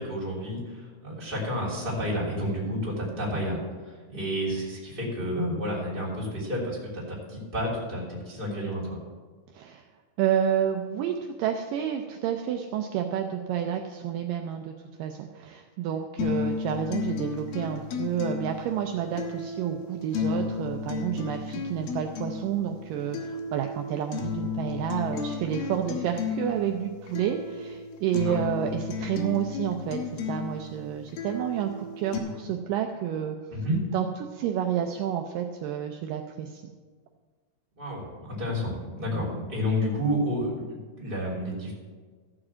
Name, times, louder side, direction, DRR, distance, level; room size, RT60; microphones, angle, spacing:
voice 1, 0.0-9.0 28.2-28.4 33.5-33.8 37.8-41.7, equal, 15° right, -5 dB, 2.9 m, -30 dB
voice 2, 9.5-9.9 10.2-33.4 33.9-34.1 34.3-36.6 39.1-39.3, right 9 dB, 85° right, 4 dB, 1.9 m, -30 dB
sound 1, 16.2-32.2, left 5 dB, 75° left, 3.0 m, -34 dB
14.5 x 5.0 x 7.4 m, 1.5 s
omnidirectional pair, 4.5 m